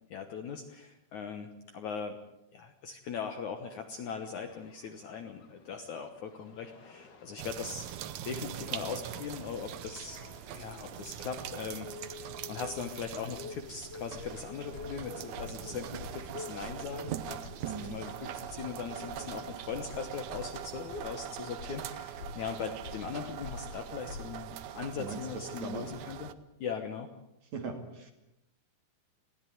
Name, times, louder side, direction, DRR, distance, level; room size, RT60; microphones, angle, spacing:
voice 1, 0.1-2.2 2.5-7.9 8.2-10.2 10.5-26.3 26.6-27.1, left 6 dB, 65° left, 7 dB, 2.1 m, -40 dB
sound 1, 4.0-20.2, left 4 dB, 90° left, 0.9 m, -51 dB
sound 2, 7.4-26.3, right 11 dB, 80° right, 1.7 m, -42 dB
sound 3, 14.1-24.7, left 4 dB, 45° left, 2.2 m, -48 dB
voice 2, 17.6-18.0 25.0-25.9 27.5-28.1, right 4 dB, 50° right, 4 dB, 3.3 m, -40 dB
21.5 x 16.0 x 9.4 m, 0.88 s
omnidirectional pair, 4.7 m